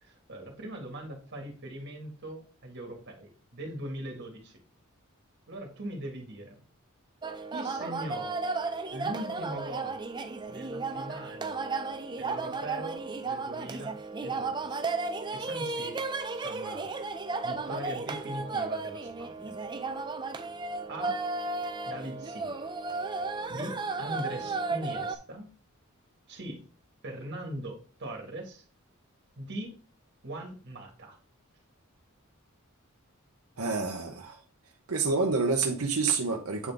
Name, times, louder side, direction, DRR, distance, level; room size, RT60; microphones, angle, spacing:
voice 1, 0.0-4.6 5.5-6.6 7.5-8.3 8.9-10.0 10.5-11.6 12.2-14.8 15.3-16.0 16.4-16.9 17.4-19.5 20.9-21.2 21.9-22.7 23.5-25.5 26.3-26.6 27.0-28.6 29.4-29.8 30.2-31.2, right 1 dB, 55° right, 1.7 m, -40 dB
sound 1, 7.2-25.2, right 3 dB, 20° right, 0.5 m, -34 dB
voice 2, 33.6-34.4 34.9-36.7, right 4 dB, 85° right, 0.8 m, -28 dB
8.1 x 3.8 x 3.5 m
head